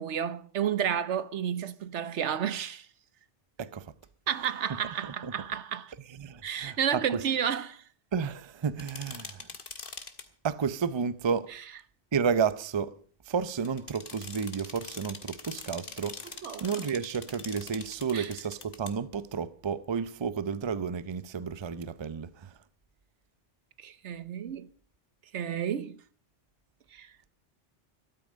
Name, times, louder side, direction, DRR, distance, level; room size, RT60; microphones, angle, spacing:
voice 1, 0.0-2.9 4.3-5.9 6.4-7.8 16.4-16.8 18.1-18.3 23.8-24.7 25.3-26.0 26.9-27.1, right 9 dB, 75° right, 1.1 m, -31 dB
voice 2, 3.6-3.9 5.0-5.3 6.2-7.2 8.1-9.5 10.4-11.5 12.1-13.0 13.3-22.5, right 6 dB, 30° right, 0.6 m, -32 dB
sound 1, 8.8-10.3 13.6-18.9, left 4 dB, 50° left, 1.6 m, -44 dB
13.5 x 13.0 x 6.3 m
omnidirectional pair, 1.2 m